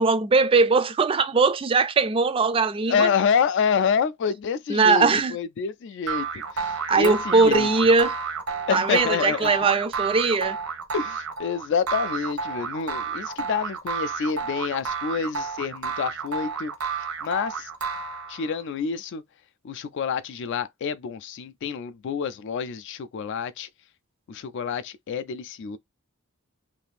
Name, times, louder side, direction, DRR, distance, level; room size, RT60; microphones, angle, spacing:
voice 1, 0.0-3.1 4.7-5.4 6.9-8.1 8.7-10.6, right 4 dB, 25° right, 0.3 m, -20 dB
voice 2, 2.9-7.7 8.7-9.5 10.9-16.7 17.2-17.7 18.3-19.2 19.6-23.7 24.3-25.8, left 6 dB, 55° left, 0.3 m, -27 dB
sound 1, 6.1-18.6, right 5 dB, 80° right, 0.8 m, -31 dB
2.7 x 2.5 x 3.3 m
head